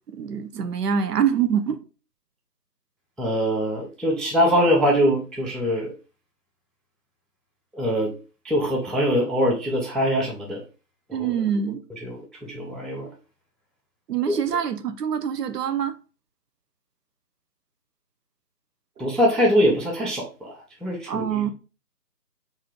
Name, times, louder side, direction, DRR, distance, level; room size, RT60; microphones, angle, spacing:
voice 1, 0.1-1.8 11.1-11.8 14.1-15.9 21.1-21.5, right 8 dB, 70° right, 0.6 m, -25 dB
voice 2, 3.2-5.9 7.7-8.1 8.4-10.6 11.1-11.4 12.0-13.1 14.3-14.4 19.0-21.5, equal, ahead, 0.4 m, -23 dB
3.0 x 2.6 x 3.6 m
figure-of-eight pair, 150°, 49 cm